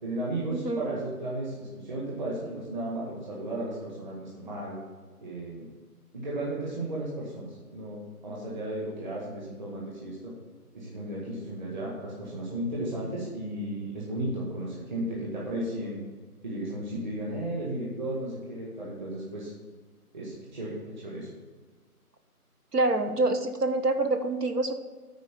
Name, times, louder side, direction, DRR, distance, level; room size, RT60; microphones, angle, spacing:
voice 1, 0.0-4.8 5.2-5.6 6.1-10.3 10.7-16.0 16.4-19.5 20.1-21.3, right 1 dB, 30° right, -5 dB, 1.8 m, -34 dB
voice 2, 0.5-0.9 22.7-24.7, right 2 dB, 85° right, 8 dB, 1.3 m, -26 dB
10.0 x 4.5 x 6.9 m, 1.4 s
figure-of-eight pair, 155°, 46 cm